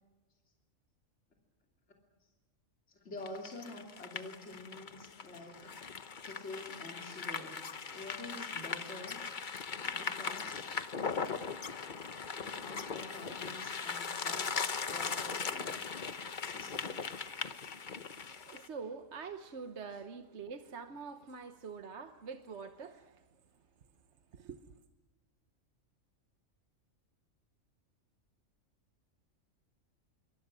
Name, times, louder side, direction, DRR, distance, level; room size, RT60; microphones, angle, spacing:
voice 1, 2.9-5.7 6.2-9.2 9.8-10.7 12.4-15.8 16.4-17.0, left 2 dB, 60° left, 3.2 m, -48 dB
sound 1, 3.2-18.7, left 5 dB, 40° left, 1.0 m, -39 dB
voice 2, 18.3-23.2 24.3-24.6, right 5 dB, 60° right, 1.3 m, -45 dB
26.5 x 24.5 x 6.1 m
omnidirectional pair, 1.4 m